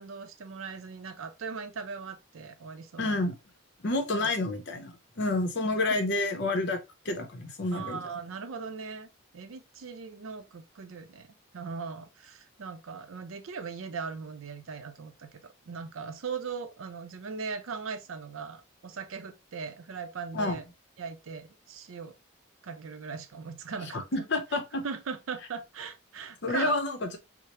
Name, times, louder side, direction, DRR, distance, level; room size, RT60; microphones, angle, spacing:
voice 1, 0.0-3.2 4.2-4.3 5.9-6.0 7.7-9.1 9.3-11.3 11.5-20.6 21.0-22.2 22.6-24.2 24.8-26.8, right 5 dB, 80° right, 0.5 m, -39 dB
voice 2, 3.0-3.4 3.8-8.0 20.3-20.6 23.9-24.8 26.4-27.2, left 2 dB, 55° left, 0.7 m, -29 dB
4.7 x 2.0 x 2.8 m
head